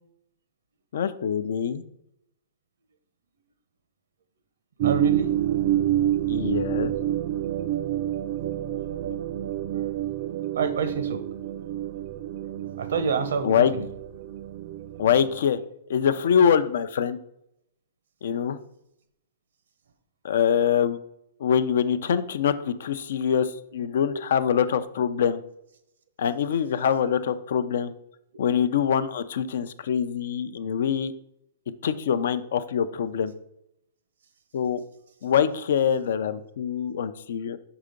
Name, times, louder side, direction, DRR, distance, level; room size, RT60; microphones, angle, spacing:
voice 1, 0.9-1.8 6.3-6.9 13.4-13.7 15.0-15.6 15.9-17.2 18.2-18.6 20.2-21.0 21.4-25.4 26.2-27.9 28.4-31.1 31.8-33.3 34.5-34.8 35.2-37.6, left 8 dB, 70° left, 12 dB, 0.5 m, -24 dB
sound 1, 4.8-15.4, right 12 dB, 45° right, 0.4 m, -28 dB
voice 2, 4.8-5.3 9.7-9.9 10.6-11.2 12.8-13.9 24.1-24.2, right 5 dB, 80° right, 11 dB, 0.9 m, -27 dB
5.7 x 4.9 x 5.1 m, 0.79 s
hypercardioid pair, 155°, 0 cm